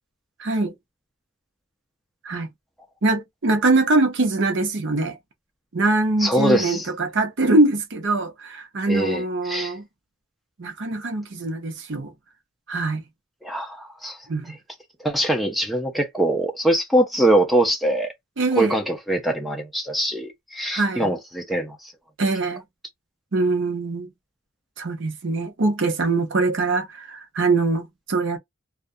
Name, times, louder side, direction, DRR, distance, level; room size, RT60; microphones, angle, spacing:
voice 1, 0.4-0.7 2.2-2.5 3.0-5.2 5.7-9.9 10.6-12.1 12.7-13.0 14.3-14.6 18.4-18.8 20.7-21.1 22.2-22.6 23.3-24.1 24.8-28.4, right 2 dB, 55° right, 0.7 m, -23 dB
voice 2, 6.2-6.9 8.9-9.7 13.4-14.2 15.0-18.1 18.6-21.9, right 1 dB, ahead, 0.4 m, -23 dB
2.3 x 2.3 x 2.5 m
head